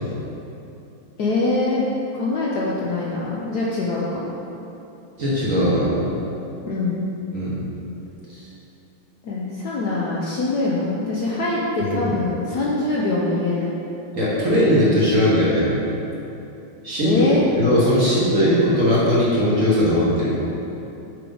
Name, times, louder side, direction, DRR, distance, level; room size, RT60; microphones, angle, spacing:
voice 1, 1.2-1.9 2.1-4.3 6.7-7.0 9.2-13.7 17.0-17.5, left 2 dB, 65° left, -5 dB, 1.0 m, -23 dB
voice 2, 5.2-6.1 7.3-7.6 8.3-8.4 11.8-12.1 14.1-15.7 16.8-17.2 17.6-20.4, equal, 45° right, -7 dB, 1.3 m, -19 dB
7.8 x 4.8 x 3.9 m, 2.9 s
omnidirectional pair, 2.3 m